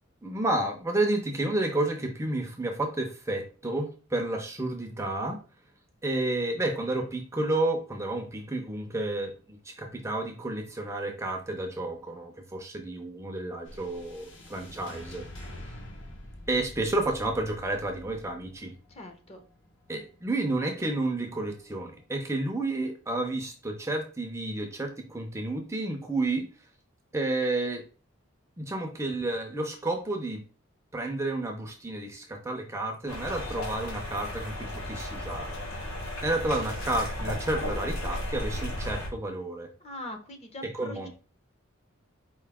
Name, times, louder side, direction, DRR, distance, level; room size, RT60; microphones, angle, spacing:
voice 1, 0.2-5.4 6.0-15.3 16.5-18.7 19.9-26.5 27.1-27.8 28.6-30.4 30.9-35.6 36.2-39.7 40.7-41.1, right 2 dB, 15° right, 4 dB, 0.5 m, -31 dB
sound 1, 13.6-22.0, left 1 dB, 65° left, 1.0 m, -47 dB
voice 2, 18.9-19.4 39.8-41.1, left 1 dB, 30° left, 4 dB, 0.7 m, -42 dB
sound 2, 33.1-39.1, left 1 dB, 80° left, 1.5 m, -34 dB
4.7 x 2.7 x 3.4 m, 0.36 s
head